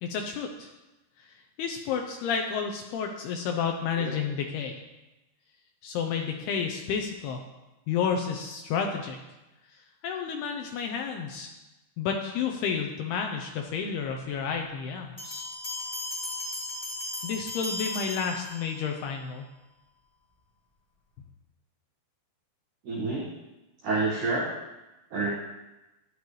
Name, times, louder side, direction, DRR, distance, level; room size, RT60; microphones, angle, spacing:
voice 1, 0.0-0.7 1.2-1.3 1.6-4.8 5.8-7.4 7.9-9.2 10.0-11.5 12.0-15.5 17.2-19.5, left 6 dB, 85° left, 3 dB, 2.3 m, -31 dB
sound 1, 15.2-19.0, left 1 dB, 20° left, 1.7 m, -36 dB
voice 2, 22.8-23.3 23.8-24.6 25.1-25.3, right 3 dB, 60° right, -4 dB, 2.2 m, -28 dB
14.0 x 10.0 x 3.2 m, 1.0 s
omnidirectional pair, 5.5 m